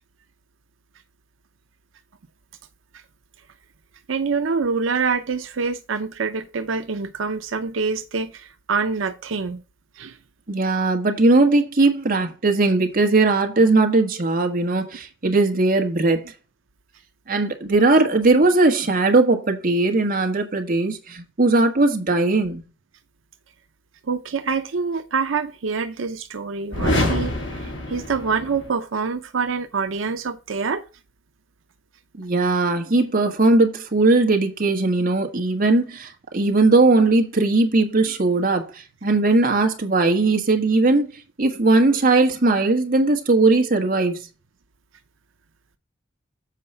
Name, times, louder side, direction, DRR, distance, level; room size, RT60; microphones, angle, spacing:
voice 1, 4.1-9.6 10.0-10.2 24.0-30.8, right 5 dB, 90° right, 0.7 m, -26 dB
voice 2, 10.5-16.3 17.3-22.6 32.2-41.1 41.4-44.3, right 2 dB, 50° right, 1.5 m, -19 dB
sound 1, 26.7-28.7, left 1 dB, 65° left, 2.7 m, -25 dB
7.4 x 4.7 x 5.4 m
head